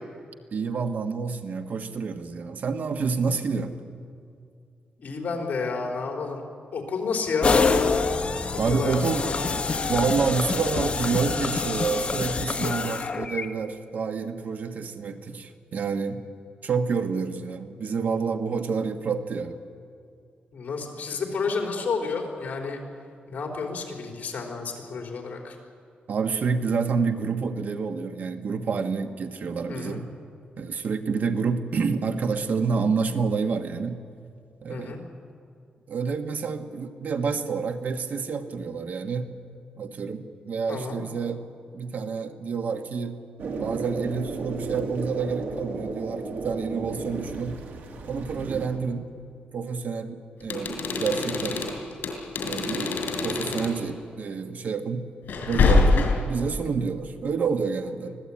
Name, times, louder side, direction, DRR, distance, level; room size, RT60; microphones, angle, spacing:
voice 1, 0.5-3.7 8.6-9.3 9.9-16.2 16.6-19.6 26.1-30.1 30.6-34.0 34.6-35.0 35.9-39.3 39.8-41.4 41.7-43.2 43.6-47.6 48.0-49.1 49.5-51.7 52.4-55.0 55.5-58.2, right 5 dB, 60° right, 7 dB, 1.4 m, -28 dB
voice 2, 5.0-6.4 6.7-7.6 8.7-9.5 20.5-22.8 23.3-25.6 29.7-30.0 34.7-35.0 40.7-41.0, left 4 dB, 55° left, 1 dB, 4.4 m, -30 dB
sound 1, 7.4-13.5, left 4 dB, 35° left, 1.4 m, -26 dB
sound 2, 43.4-48.7, right 3 dB, 75° right, 3.0 m, -33 dB
sound 3, 50.4-53.8 55.3-56.4, left 3 dB, 70° left, 4.3 m, -24 dB
24.5 x 16.5 x 8.7 m, 2.3 s
cardioid pair, 115°, 3 cm